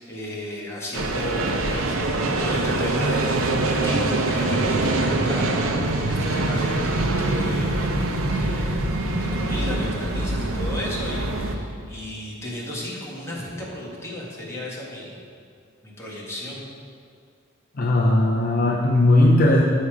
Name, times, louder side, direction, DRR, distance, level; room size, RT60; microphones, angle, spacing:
voice 1, 0.0-5.5 6.1-15.2 15.8-16.6, left 1 dB, 15° left, -5 dB, 1.7 m, -34 dB
sound 1, 0.9-11.6, right 2 dB, 85° right, 0.7 m, -24 dB
sound 2, 6.3-11.6, equal, 60° right, 1.2 m, -34 dB
voice 2, 17.8-19.6, left 1 dB, 45° left, -2 dB, 0.6 m, -17 dB
8.4 x 5.6 x 4.8 m, 2.3 s
head